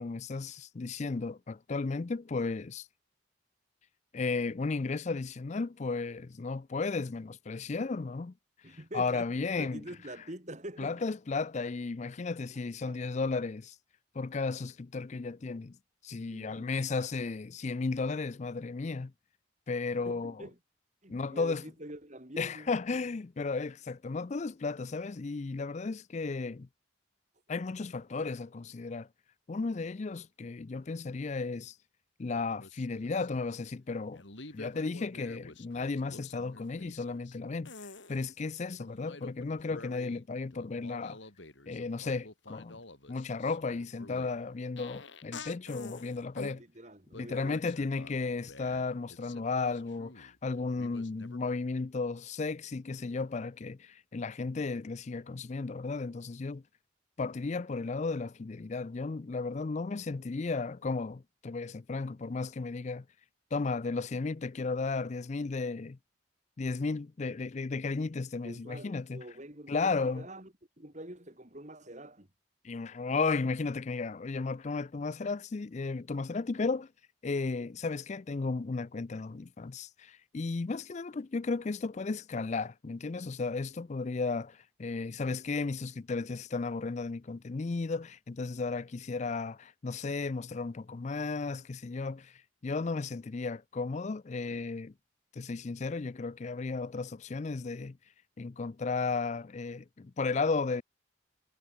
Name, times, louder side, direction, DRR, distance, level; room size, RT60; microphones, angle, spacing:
voice 1, 0.0-2.9 4.1-8.3 8.6-9.8 10.8-13.8 14.1-15.8 16.0-19.1 19.7-20.5 21.1-21.6 22.4-26.7 27.5-29.1 29.5-31.8 32.2-34.2 34.5-37.7 38.1-41.2 41.7-42.8 43.1-46.6 47.1-56.6 57.2-63.1 63.5-66.0 66.6-69.2 69.7-70.3 72.6-76.9 77.2-94.9 95.3-98.0 98.4-100.8, left 4 dB, 35° left, 0.4 m, -34 dB
voice 2, 8.6-9.3 9.6-10.9 12.9-13.0 16.3-16.7 19.9-20.6 21.0-22.7 46.5-47.7 68.4-72.3, right 1 dB, 35° right, 3.5 m, -46 dB
sound 1, 32.6-33.6 34.1-37.4 37.6-38.2 38.8-40.3 40.5-46.6 47.1-50.4 50.8-51.4, left 3 dB, 65° left, 5.5 m, -49 dB
head